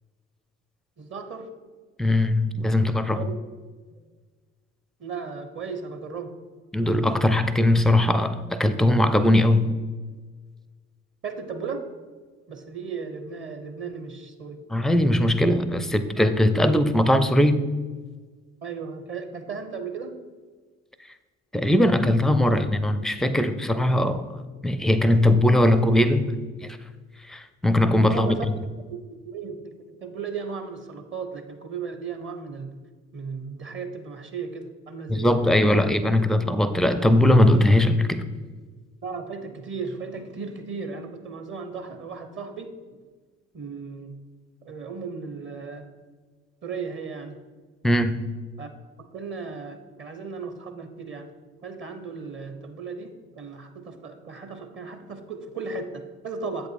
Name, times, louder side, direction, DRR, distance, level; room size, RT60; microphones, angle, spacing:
voice 1, 1.0-1.5 3.1-3.3 3.9-4.0 5.0-6.4 11.2-11.9 12.5-14.6 18.6-20.2 28.1-28.5 29.2-29.7 30.0-32.7 33.1-35.5 39.0-43.0 43.5-44.2 44.6-45.9 46.6-47.4 48.6-48.7 49.1-51.3 51.6-56.7, right 5 dB, 35° right, 7 dB, 0.9 m, -36 dB
voice 2, 2.0-3.2 6.7-9.7 14.7-17.6 21.5-24.3 24.6-26.3 27.3-28.4 35.1-38.2 47.8-48.2, left 1 dB, ahead, 12 dB, 0.4 m, -20 dB
8.0 x 5.4 x 4.3 m, 1.4 s
figure-of-eight pair, 50°, 36 cm